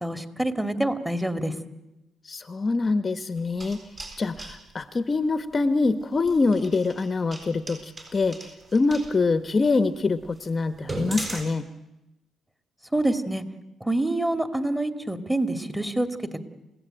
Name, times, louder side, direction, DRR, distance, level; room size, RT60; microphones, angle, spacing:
voice 1, 0.0-1.5 12.9-13.4 13.8-16.1, right 1 dB, 5° right, 7 dB, 2.4 m, -26 dB
voice 2, 2.2-3.8 4.2-11.7, left 3 dB, 35° left, 10 dB, 1.2 m, -25 dB
sound 1, 3.4-4.6 6.2-9.1 9.7-9.8 10.2-10.3 10.7-11.4, right 2 dB, 35° right, 7.4 m, -37 dB
29.0 x 17.0 x 9.1 m, 0.96 s
cardioid pair, 90°, 0 cm